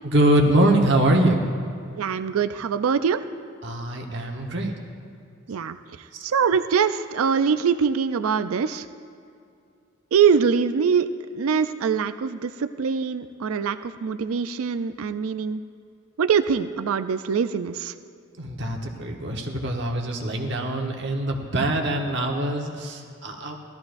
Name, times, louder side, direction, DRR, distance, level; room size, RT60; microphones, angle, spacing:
voice 1, 0.0-1.4 3.6-4.7 6.1-6.2 18.4-23.6, right 1 dB, 55° right, 1 dB, 1.2 m, -23 dB
voice 2, 2.0-3.2 5.5-5.8 6.2-8.8 10.1-11.1 11.3-15.6 16.2-17.9, right 6 dB, 80° right, 11 dB, 0.4 m, -23 dB
17.5 x 13.0 x 2.6 m, 2.4 s
head